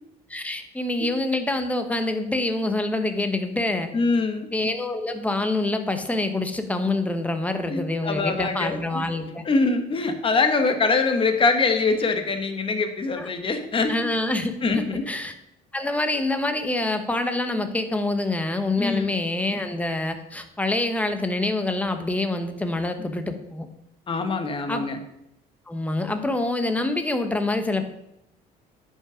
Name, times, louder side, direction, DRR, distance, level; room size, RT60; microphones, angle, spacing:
voice 1, 0.3-3.9 4.5-9.4 13.2-13.3 13.9-15.3 15.7-23.7 24.7-24.9 25.7-27.8, left 2 dB, 10° left, 7 dB, 1.0 m, -26 dB
voice 2, 3.9-4.5 7.7-8.8 9.4-14.1 14.6-15.1 18.8-19.1 24.1-25.0, left 3 dB, 30° left, 7 dB, 1.3 m, -23 dB
10.5 x 5.5 x 4.9 m, 0.81 s
cardioid pair, 110°, 17 cm